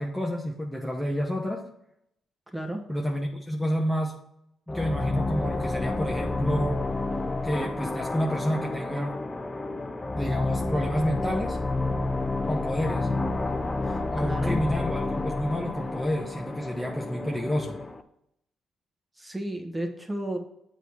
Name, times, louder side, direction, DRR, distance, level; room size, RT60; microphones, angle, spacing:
voice 1, 0.0-1.6 2.9-4.1 4.7-6.8 7.4-9.1 10.1-11.6 12.5-13.1 14.1-17.8, equal, 5° left, 0 dB, 1.0 m, -29 dB
voice 2, 2.5-2.9 13.8-14.6 19.2-20.4, right 1 dB, 10° right, 4 dB, 1.3 m, -33 dB
sound 1, 4.7-18.0, left 2 dB, 25° left, 0.6 m, -30 dB
8.0 x 3.1 x 5.7 m, 0.78 s
supercardioid pair, 55°, 0 cm